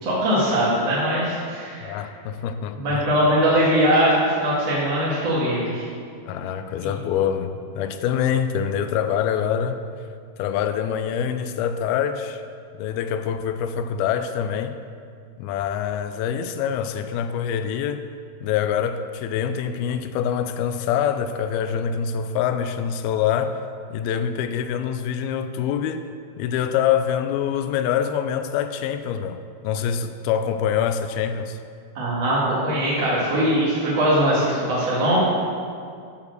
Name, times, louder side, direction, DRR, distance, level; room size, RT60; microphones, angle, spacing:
voice 1, 0.0-1.9 2.7-5.9 6.8-6.9 31.9-35.2, equal, 45° right, -8 dB, 2.6 m, -21 dB
voice 2, 1.8-3.1 6.3-9.8 10.4-12.4 12.8-14.7 15.4-18.1 18.4-23.6 23.9-26.1 26.4-31.6, left 8 dB, 80° left, 9 dB, 2.3 m, -25 dB
9.5 x 7.3 x 6.6 m, 2.3 s
omnidirectional pair, 4.6 m